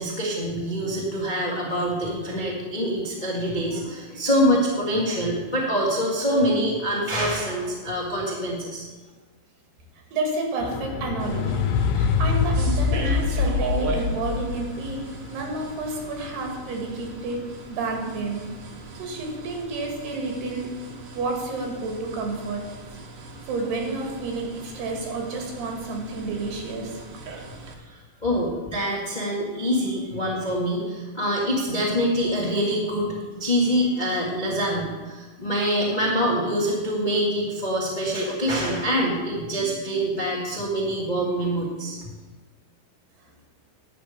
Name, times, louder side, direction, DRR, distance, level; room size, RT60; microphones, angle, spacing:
voice 1, 0.0-8.8 27.9-42.0, equal, 70° left, -4 dB, 0.4 m, -25 dB
voice 2, 10.1-11.6 11.9-15.0 15.3-17.4 17.7-18.4 19.0-20.7 21.1-22.6 23.5-27.0, right 3 dB, 75° right, 1 dB, 3.9 m, -30 dB
sound 1, 10.6-17.1 17.9-18.0, left 5 dB, 85° left, 2.5 m, -25 dB
sound 2, 11.2-27.7, right 3 dB, 60° right, 1.9 m, -38 dB
11.0 x 5.1 x 8.4 m, 1.3 s
omnidirectional pair, 4.6 m